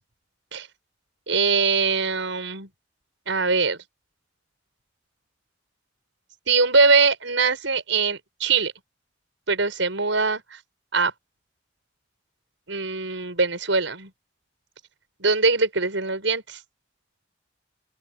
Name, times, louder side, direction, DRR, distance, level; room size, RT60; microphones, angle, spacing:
voice 1, 1.3-2.7 3.3-3.8 6.5-8.7 9.5-10.6 10.9-11.1 12.7-14.1 15.2-16.6, right 4 dB, 85° right, 6.2 m, -22 dB
open air
head